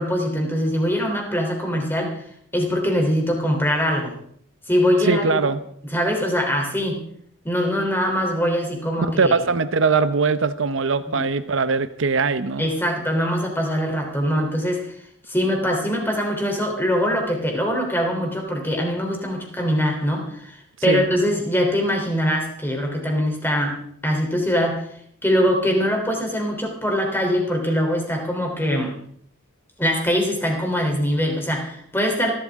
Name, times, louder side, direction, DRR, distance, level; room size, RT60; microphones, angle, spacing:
voice 1, 0.0-2.2 2.5-4.2 4.7-5.4 5.9-7.0 7.4-9.4 11.1-11.3 12.6-14.8 15.3-23.8 24.0-24.9 25.2-28.9 29.8-32.3, equal, 10° left, 1 dB, 3.4 m, -22 dB
voice 2, 5.0-5.6 9.0-12.7 20.9-21.0, right 4 dB, 65° right, 12 dB, 0.7 m, -21 dB
26.5 x 12.5 x 3.6 m, 0.65 s
head